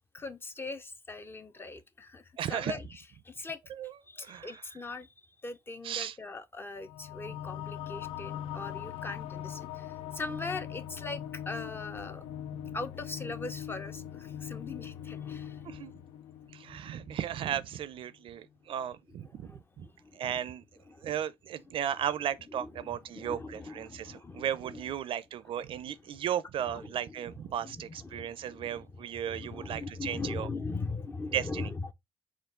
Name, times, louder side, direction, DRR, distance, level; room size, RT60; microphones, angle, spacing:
voice 1, 0.1-3.6 4.0-12.2 12.7-15.8 18.6-21.2 21.7-21.8 22.5-25.1 25.6-25.7 26.0-26.3 26.7-31.9, left 3 dB, 25° left, 0.5 m, -41 dB
voice 2, 2.4-2.8 3.8-3.9 4.2-4.5 5.8-6.1 15.6-15.9 16.5-19.5 19.8-19.9 20.1-20.6 21.0-30.5 31.3-31.7, right 10 dB, 70° right, 0.4 m, -35 dB
sound 1, 6.8-17.7, left 10 dB, 85° left, 0.4 m, -41 dB
4.5 x 2.3 x 3.6 m
cardioid pair, 100°, 10 cm